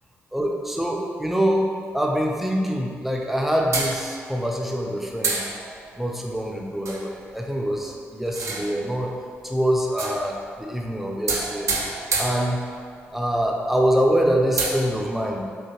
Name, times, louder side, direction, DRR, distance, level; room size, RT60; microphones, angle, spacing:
voice 1, 0.3-1.7 1.9-5.4 6.0-9.1 9.4-11.7 12.2-12.6 13.1-15.5, equal, 5° right, 0 dB, 0.6 m, -24 dB
sound 1, 3.7-4.5 5.2-6.0 6.8-7.1 8.3-9.0 9.9-10.5 11.3-13.0 13.4-13.5 13.8-13.9 14.4-14.7, right 3 dB, 60° right, 0.5 m, -28 dB
3.9 x 3.0 x 2.9 m, 2.1 s
supercardioid pair, 50°, 6 cm